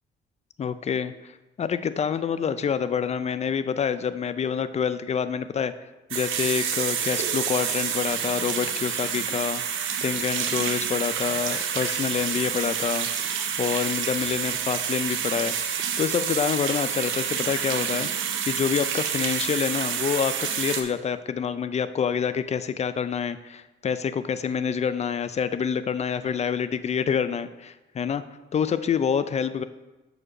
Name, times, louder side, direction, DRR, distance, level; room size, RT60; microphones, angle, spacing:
voice 1, 0.6-1.3 1.6-5.7 6.1-15.5 16.0-18.1 18.5-28.2 28.5-29.6, left 7 dB, 35° left, 13 dB, 0.4 m, -27 dB
sound 1, 6.1-20.8, right 8 dB, 80° right, 0.8 m, -28 dB
6.2 x 4.9 x 5.0 m, 1.1 s
cardioid pair, 90°, 20 cm